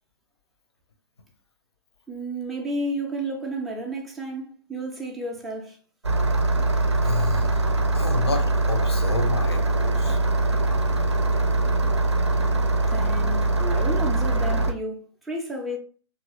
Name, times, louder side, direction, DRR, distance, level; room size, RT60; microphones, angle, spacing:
voice 1, 2.1-5.8 12.9-15.8, right 1 dB, ahead, 0.3 m, -32 dB
Engine starting, 6.0-14.7, right 2 dB, 85° right, 0.5 m, -22 dB
voice 2, 7.0-7.7 7.9-10.2, left 3 dB, 70° left, 0.6 m, -30 dB
2.8 x 2.4 x 2.7 m
figure-of-eight pair, 115°, 14 cm